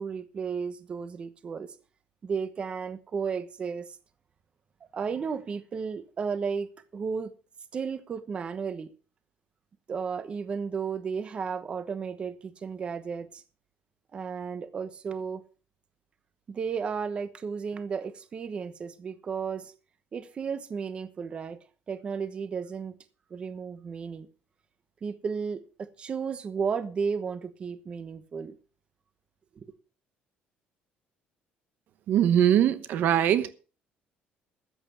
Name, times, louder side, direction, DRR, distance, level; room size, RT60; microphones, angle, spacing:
voice 1, 0.0-1.7 2.2-3.9 4.9-6.7 6.9-7.3 7.7-8.9 9.9-13.4 14.1-15.4 16.5-19.7 20.1-21.6 21.9-23.0 23.3-24.3 25.0-28.5 29.6-29.7, right 6 dB, 30° right, 1.1 m, -33 dB
voice 2, 32.1-33.5, right 10 dB, 55° right, 1.0 m, -22 dB
14.0 x 8.9 x 5.7 m
cardioid pair, 165°, 4 cm